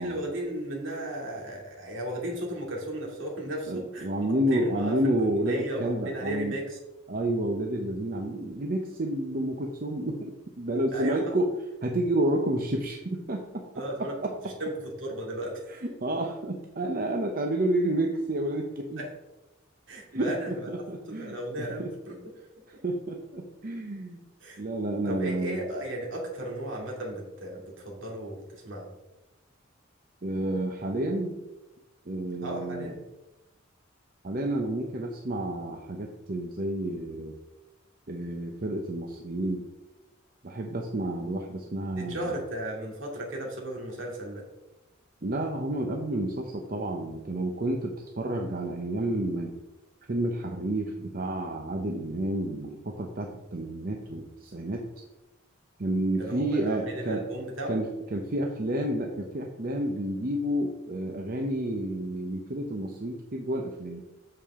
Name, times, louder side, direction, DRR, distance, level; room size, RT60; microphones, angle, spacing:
voice 1, 0.0-4.1 4.5-6.8 10.9-11.3 13.7-14.2 14.4-15.6 19.0-19.1 19.9-20.7 21.1-22.2 24.4-24.6 25.1-28.9 32.4-33.0 41.9-44.5 56.2-57.8, right 1 dB, 70° right, -2 dB, 2.5 m, -35 dB
voice 2, 3.7-6.6 7.1-11.5 11.8-13.6 14.2-14.3 15.7-19.0 20.1-21.9 22.8-24.2 24.6-25.6 30.2-31.4 32.1-32.9 34.2-37.3 38.1-39.6 40.4-42.4 45.2-49.5 50.1-54.9 55.8-57.3 57.7-64.0, right 1 dB, 45° right, 2 dB, 0.8 m, -30 dB
8.6 x 7.0 x 3.7 m, 1.0 s
head